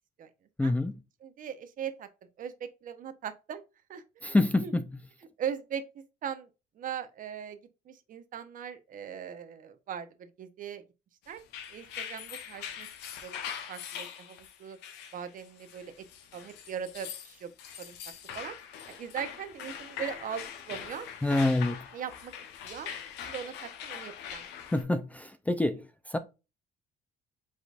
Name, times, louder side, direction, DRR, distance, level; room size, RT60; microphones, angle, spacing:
voice 1, 0.6-1.0 4.2-4.8 21.2-21.8 24.7-26.2, left 2 dB, 10° left, 0.4 m, -27 dB
voice 2, 1.2-2.1 2.4-3.6 3.9-4.4 4.6-4.7 5.4-6.5 6.7-7.6 7.8-10.8 11.3-11.4 11.7-12.9 13.2-13.4 13.7-14.8 15.1-16.0 16.3-17.5 17.8-18.0 18.3-18.6 18.9-21.1 21.9-22.3 22.6-22.9 23.3-24.5, right 8 dB, 55° right, 0.9 m, -39 dB
sound 1, 11.4-24.8, left 8 dB, 90° left, 0.9 m, -42 dB
5.0 x 3.9 x 2.4 m
cardioid pair, 110°, 17 cm